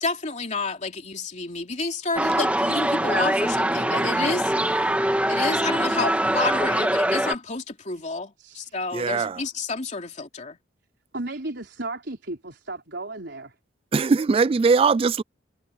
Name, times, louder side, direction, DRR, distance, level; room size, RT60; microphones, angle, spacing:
voice 1, 0.0-4.9 5.3-10.6, left 3 dB, 40° left, 2.9 m, -30 dB
sound 1, 2.2-7.4, right 1 dB, 5° right, 1.9 m, -23 dB
voice 2, 8.4-8.7 11.1-13.5, right 2 dB, 60° right, 4.8 m, -34 dB
voice 3, 8.9-9.4 13.9-15.2, right 4 dB, 30° right, 0.3 m, -20 dB
head